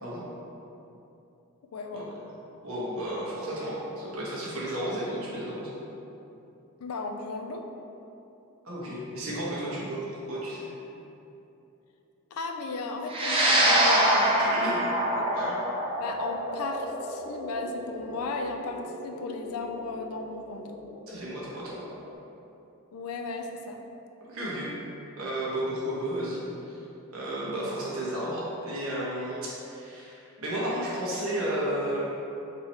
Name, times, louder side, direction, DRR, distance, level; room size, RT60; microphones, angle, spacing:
voice 1, 1.7-2.1 6.8-7.7 12.3-14.8 15.1-15.3 16.0-20.7 22.9-23.8, left 3 dB, 75° left, 4 dB, 0.4 m, -35 dB
voice 2, 2.6-5.7 8.6-10.7 14.2-14.9 15.3-15.5 21.1-21.9 24.3-24.7 25.2-26.8 27.1-32.0, right 1 dB, 70° right, -7 dB, 1.2 m, -33 dB
sound 1, 13.1-21.6, right 1 dB, 25° right, 0.4 m, -26 dB
3.7 x 2.9 x 4.3 m, 2.9 s
head